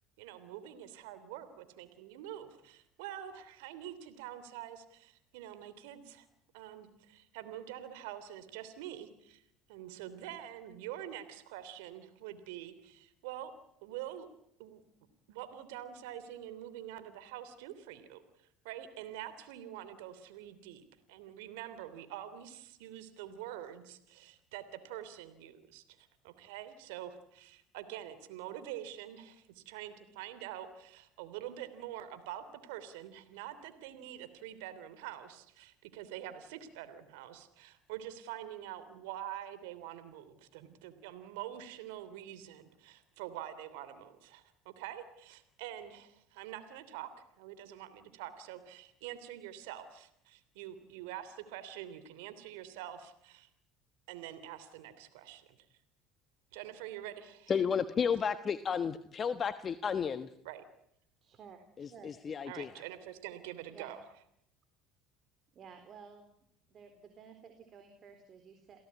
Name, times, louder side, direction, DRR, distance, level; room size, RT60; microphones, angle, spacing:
voice 1, 0.2-6.3 6.5-9.4 9.7-13.5 13.8-14.3 14.6-14.8 15.3-18.2 18.6-47.1 47.4-53.5 54.1-55.5 56.5-57.6 60.4-60.6 62.4-64.0, right 11 dB, 80° right, 12 dB, 3.1 m, -46 dB
voice 2, 57.5-60.3 61.8-62.7, left 6 dB, 35° left, 11 dB, 1.3 m, -32 dB
voice 3, 61.2-61.6 61.9-62.1 63.7-63.9 65.5-66.3 66.7-68.8, right 6 dB, 45° right, 7 dB, 4.0 m, -53 dB
29.0 x 17.0 x 9.6 m, 0.75 s
hypercardioid pair, 80°, 0 cm